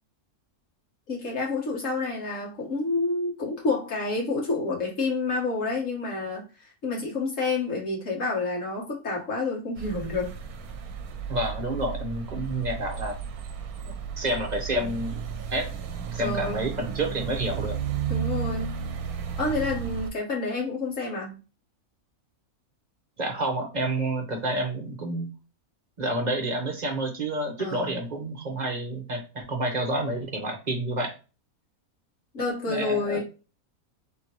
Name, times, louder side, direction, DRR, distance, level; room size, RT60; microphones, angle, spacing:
voice 1, 1.1-6.4 6.8-10.3 16.2-16.6 18.1-18.7 19.4-21.4 27.6-28.0 32.3-33.2, left 3 dB, 60° left, -3 dB, 1.8 m, -29 dB
sound 1, 9.8-20.1, right 7 dB, 85° right, 1.1 m, -33 dB
voice 2, 11.3-13.1 14.2-15.2 15.5-15.7 16.1-17.8 23.2-25.3 26.0-31.1 32.7-33.2, right 1 dB, 35° right, 2 dB, 1.0 m, -29 dB
3.7 x 3.5 x 3.0 m, 0.32 s
omnidirectional pair, 1.5 m